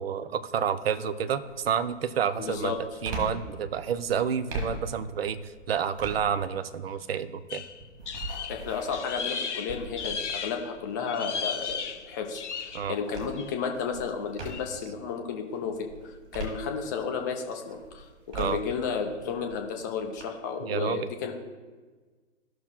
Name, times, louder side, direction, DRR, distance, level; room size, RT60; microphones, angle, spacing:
voice 1, 0.0-2.8 3.0-7.6 12.7-13.0 18.4-18.6 20.6-21.1, right 8 dB, 55° right, 12 dB, 0.5 m, -29 dB
sound 1, 0.5-0.9 1.4-14.9 15.4-17.2 17.6-20.2, right 2 dB, 35° right, 1.8 m, -42 dB
voice 2, 2.4-2.8 8.5-15.9 16.3-18.1 18.3-21.3, left 6 dB, 15° left, 3 dB, 0.4 m, -32 dB
sound 2, 7.5-10.7 11.0-12.9 13.3-13.7 14.4-14.7, left 6 dB, 70° left, 0.6 m, -35 dB
14.0 x 6.0 x 2.2 m, 1.4 s
figure-of-eight pair, 115°, 37 cm